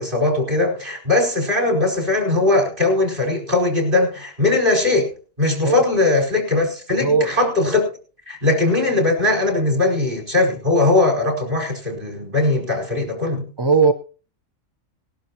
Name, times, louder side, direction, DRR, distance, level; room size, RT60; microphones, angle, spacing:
voice 1, 0.0-5.1 5.4-7.9 8.3-13.5, left 2 dB, 45° right, 5.1 m, -19 dB
voice 2, 7.0-7.4 13.6-13.9, right 4 dB, 25° right, 0.8 m, -18 dB
20.5 x 11.5 x 2.9 m
omnidirectional pair, 1.3 m